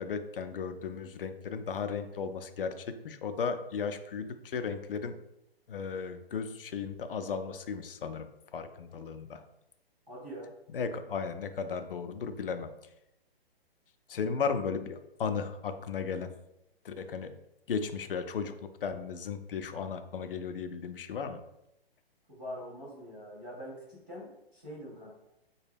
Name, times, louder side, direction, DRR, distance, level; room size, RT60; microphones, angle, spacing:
voice 1, 0.0-5.2 5.7-9.4 10.7-12.7 14.1-16.3 16.8-17.4 17.7-21.4, left 6 dB, 65° left, 8 dB, 0.4 m, -35 dB
voice 2, 10.1-10.5 22.3-25.1, equal, 10° right, -9 dB, 0.3 m, -44 dB
4.0 x 2.2 x 3.4 m, 0.85 s
figure-of-eight pair, 130°, 31 cm